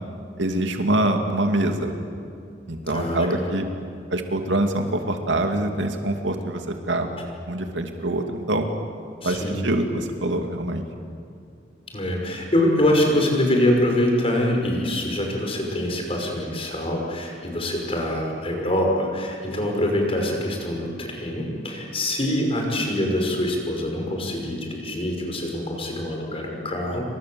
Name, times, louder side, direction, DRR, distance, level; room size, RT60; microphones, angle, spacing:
voice 1, 0.4-1.9 2.7-3.7 4.1-7.1 7.5-8.7 9.2-10.8, right 1 dB, 80° right, 4 dB, 2.6 m, -24 dB
voice 2, 2.9-3.5 9.2-9.8 11.9-27.0, left 1 dB, 30° left, 1 dB, 5.7 m, -24 dB
28.5 x 25.0 x 7.9 m, 2.5 s
head